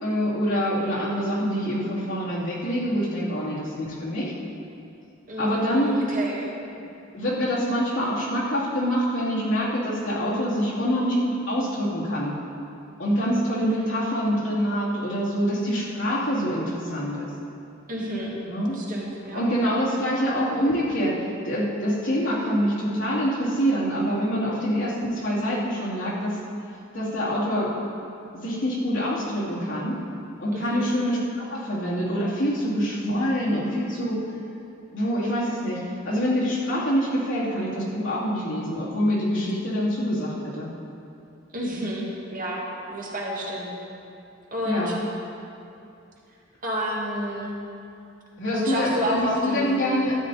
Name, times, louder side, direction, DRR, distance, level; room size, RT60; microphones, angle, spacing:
voice 1, 0.0-4.3 5.4-6.0 7.1-12.3 13.0-17.3 18.5-18.8 19.3-21.1 21.4-26.4 26.9-27.7 28.4-30.0 30.4-34.2 34.9-40.7 41.7-41.9 44.6-44.9 48.4-50.2, equal, 70° left, -7 dB, 2.7 m, -25 dB
voice 2, 5.3-6.5 13.5-13.9 17.9-18.3 18.7-19.5 30.5-30.9 41.5-42.6 42.9-43.7 44.5-45.0 46.6-47.5 48.5-49.8, equal, 45° right, -4 dB, 1.9 m, -30 dB
12.5 x 9.2 x 4.1 m, 2.7 s
head